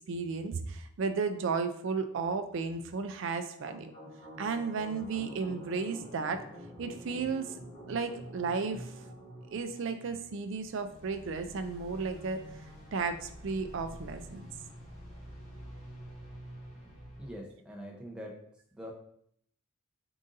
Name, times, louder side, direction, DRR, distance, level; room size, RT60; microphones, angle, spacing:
voice 1, 0.1-3.9 4.4-6.4 6.8-7.5 7.9-9.0 9.5-12.4 12.9-14.5, right 4 dB, 55° right, 8 dB, 0.4 m, -34 dB
sound 1, 3.6-17.4, equal, 30° left, 1.1 m, -48 dB
voice 2, 16.7-18.4 18.7-18.9, equal, 5° right, -1 dB, 0.6 m, -44 dB
3.8 x 2.5 x 3.8 m, 0.68 s
head